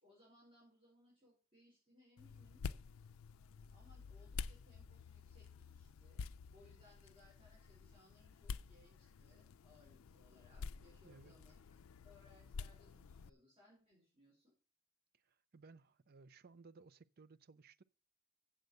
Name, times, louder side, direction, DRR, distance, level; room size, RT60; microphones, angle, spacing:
voice 1, 0.0-2.6 3.7-6.2 6.5-11.8 12.0-14.5, left 1 dB, 30° right, 5.1 m, -67 dB
sound 1, 2.2-13.3, left 5 dB, 90° left, 0.4 m, -50 dB
voice 2, 11.0-11.3 15.1-17.8, right 4 dB, 50° right, 0.5 m, -61 dB
8.0 x 7.3 x 6.5 m
head